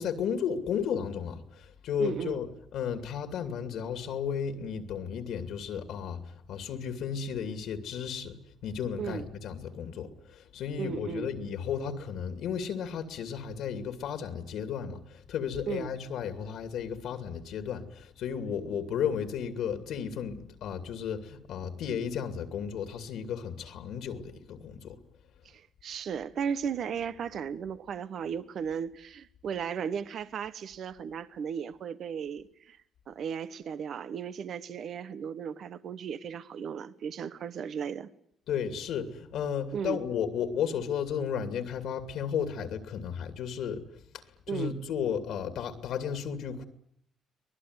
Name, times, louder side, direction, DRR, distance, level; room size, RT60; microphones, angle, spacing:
voice 1, 0.0-2.5 2.7-25.0 38.5-43.9 44.5-46.6, left 7 dB, 80° left, 2.6 m, -34 dB
voice 2, 2.0-2.4 9.0-9.3 10.8-11.3 15.7-15.9 25.4-32.8 33.1-38.1 39.7-40.0 44.5-44.8, right 7 dB, 65° right, 1.1 m, -35 dB
24.0 x 19.5 x 9.6 m
cardioid pair, 90°, 0 cm